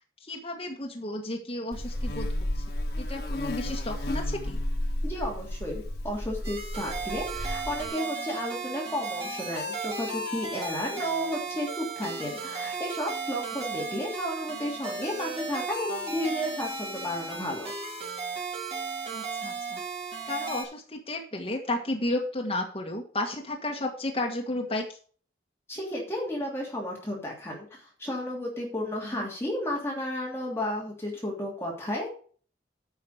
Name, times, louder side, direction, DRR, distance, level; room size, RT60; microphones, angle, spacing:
voice 1, 0.2-2.3 2.5-2.6 3.0-4.6 19.1-19.8 20.3-25.0 29.0-29.3, left 2 dB, 30° left, 0 dB, 1.5 m, -33 dB
Buzz, 1.7-7.9, left 1 dB, 60° left, 1.6 m, -32 dB
voice 2, 5.0-17.7 25.7-32.1, left 1 dB, 15° left, -3 dB, 2.9 m, -33 dB
sound 1, 6.4-20.6, right 4 dB, 35° right, 3.7 m, -35 dB
9.4 x 5.8 x 6.5 m, 0.43 s
head